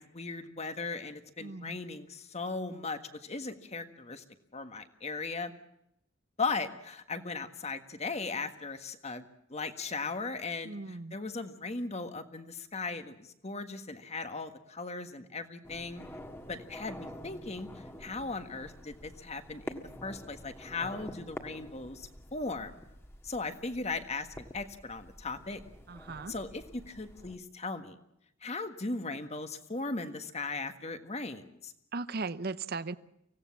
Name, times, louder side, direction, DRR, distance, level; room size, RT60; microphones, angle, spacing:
voice 1, 0.0-4.2 4.5-5.5 6.4-9.2 9.5-16.0 16.5-22.8 23.2-25.6 26.3-28.0 28.4-31.7, left 3 dB, 30° left, 9 dB, 1.6 m, -38 dB
voice 2, 1.4-1.8 10.6-11.1 25.9-26.4 31.9-33.0, right 3 dB, 50° right, 15 dB, 0.8 m, -37 dB
sound 1, 15.6-27.4, equal, 10° left, 1.8 m, -48 dB
25.0 x 17.0 x 7.2 m, 0.81 s
head